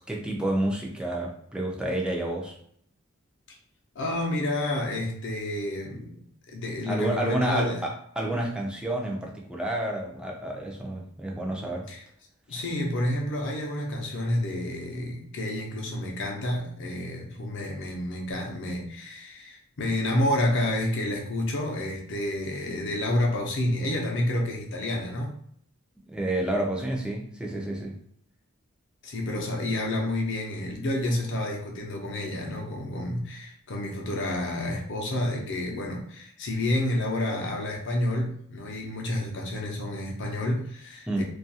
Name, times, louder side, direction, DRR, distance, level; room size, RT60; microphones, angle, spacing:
voice 1, 0.1-2.6 6.8-11.9 12.5-12.6 26.1-28.0 41.1-41.2, right 1 dB, 5° right, -1 dB, 0.4 m, -29 dB
voice 2, 4.0-6.2 6.5-7.8 11.9-12.0 12.5-25.4 29.0-41.2, left 1 dB, 60° left, 0 dB, 0.6 m, -29 dB
2.4 x 2.3 x 2.7 m, 0.66 s
head